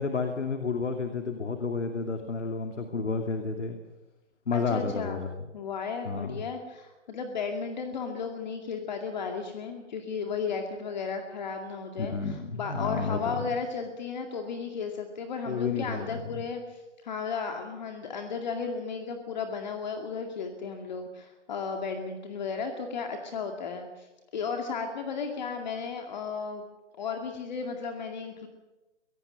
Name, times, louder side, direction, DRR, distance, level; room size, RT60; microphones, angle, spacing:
voice 1, 0.0-3.8 4.5-5.3 6.0-6.4 12.0-13.5 15.5-16.2, left 4 dB, 80° left, 6 dB, 2.8 m, -31 dB
voice 2, 4.5-5.2 5.5-24.1 24.3-26.6 27.0-28.5, left 5 dB, 40° left, 5 dB, 2.2 m, -34 dB
24.0 x 18.0 x 6.5 m, 1.1 s
hypercardioid pair, 160°, 35 cm